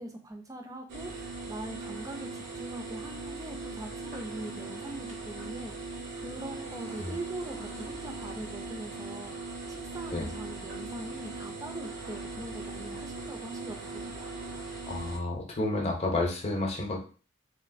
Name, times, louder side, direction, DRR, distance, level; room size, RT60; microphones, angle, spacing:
voice 1, 0.0-9.4 9.7-14.1, right 1 dB, 20° right, 3 dB, 0.4 m, -42 dB
sound 1, 0.9-15.2, right 3 dB, 80° right, 0.8 m, -40 dB
voice 2, 14.9-17.0, left 2 dB, 35° left, 1 dB, 0.6 m, -30 dB
3.1 x 2.4 x 2.5 m, 0.37 s
head